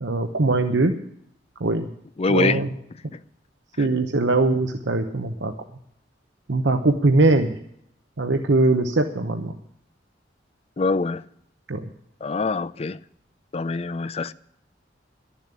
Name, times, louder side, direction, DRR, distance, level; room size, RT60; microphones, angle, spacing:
voice 1, 0.0-0.9 1.6-1.9 2.3-2.7 3.8-5.5 6.5-7.5 8.2-9.5 11.7-11.8, right 2 dB, 75° right, 0.9 m, -21 dB
voice 2, 2.2-2.6 3.8-4.0 10.8-11.2 12.2-13.0 13.5-14.3, left 3 dB, 35° left, 0.5 m, -24 dB
12.0 x 7.3 x 9.8 m
head